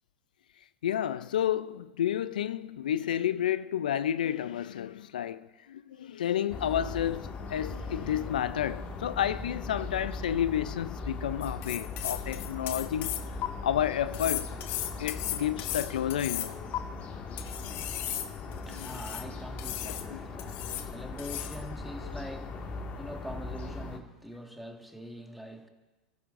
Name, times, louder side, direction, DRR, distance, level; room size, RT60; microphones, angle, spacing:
voice 1, 0.8-13.2 13.6-14.5 15.0-16.6 18.7-18.9 19.9-20.2 20.6-20.8 22.0-22.1, left 10 dB, 85° left, 0.4 m, -31 dB
sound 1, 6.5-24.0, left 3 dB, 35° left, 1.8 m, -39 dB
sound 2, 11.4-13.5 14.1-16.8 17.4-19.2 19.6-20.1 20.4-20.9 21.2-21.6, left 12 dB, 50° left, 1.0 m, -36 dB
voice 2, 18.4-25.7, equal, ahead, 1.7 m, -44 dB
29.0 x 14.5 x 2.5 m
hypercardioid pair, 105°, 4 cm